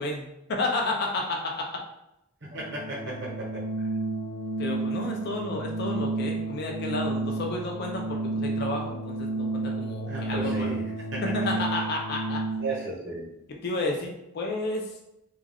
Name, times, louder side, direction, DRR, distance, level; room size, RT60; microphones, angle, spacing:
voice 1, 0.0-1.8 4.6-10.8 11.5-12.4 13.6-14.9, left 2 dB, 50° left, 1 dB, 0.4 m, -31 dB
voice 2, 2.4-3.9 10.0-11.6 12.6-13.3, right 2 dB, 60° right, -3 dB, 0.8 m, -35 dB
Organ, 2.5-12.8, right 3 dB, 30° right, 0.6 m, -31 dB
2.3 x 2.2 x 3.3 m, 0.85 s
head